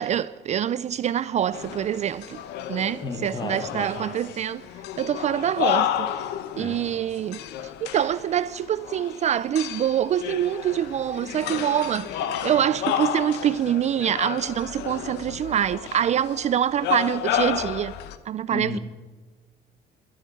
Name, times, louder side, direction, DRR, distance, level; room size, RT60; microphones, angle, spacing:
voice 1, 0.0-2.4 2.7-4.6 5.0-6.2 6.6-7.4 7.8-17.9 18.3-18.8, right 10 dB, 40° right, 0.4 m, -25 dB
sound 1, 1.5-18.2, left 10 dB, 80° left, 0.9 m, -31 dB
voice 2, 3.0-3.9 6.5-6.8 18.5-18.8, left 3 dB, 25° left, 1.8 m, -33 dB
12.0 x 9.0 x 9.0 m
cardioid pair, 110°, 17 cm